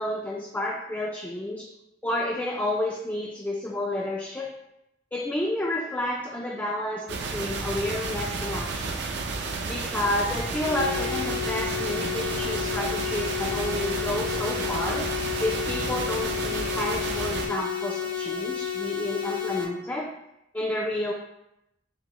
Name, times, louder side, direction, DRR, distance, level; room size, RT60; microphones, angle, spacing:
voice 1, 0.0-1.7 2.0-4.5 5.1-9.0 9.7-15.1 15.4-20.1 20.5-21.1, left 1 dB, 10° left, -2 dB, 0.3 m, -30 dB
sound 1, 7.1-17.5, right 3 dB, 65° right, 0.5 m, -32 dB
sound 2, 10.6-19.6, left 9 dB, 50° left, 0.7 m, -31 dB
5.8 x 2.0 x 3.0 m, 0.84 s
head